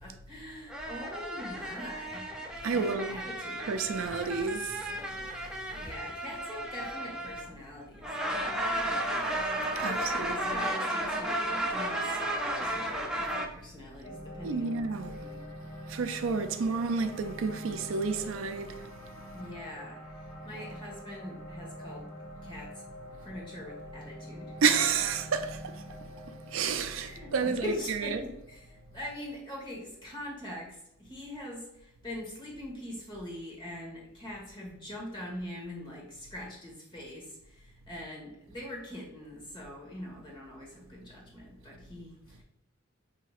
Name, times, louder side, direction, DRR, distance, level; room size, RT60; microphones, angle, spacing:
voice 1, 0.0-2.3 2.7-3.8 5.7-8.1 9.8-12.2 12.5-15.5 19.3-20.0 20.4-22.1 22.4-22.7 23.2-24.6 27.0-42.4, left 1 dB, 25° left, 1.3 m, -42 dB
sound 1, 0.7-7.6 8.0-13.5, right 1 dB, 5° right, 0.4 m, -33 dB
voice 2, 2.6-3.2 3.6-5.1 9.7-10.7 14.4-15.2 15.9-18.9 24.6-25.8 26.5-28.2, right 5 dB, 70° right, 0.4 m, -30 dB
sound 2, 14.0-30.3, equal, 75° left, 1.3 m, -46 dB
5.8 x 2.8 x 2.4 m
head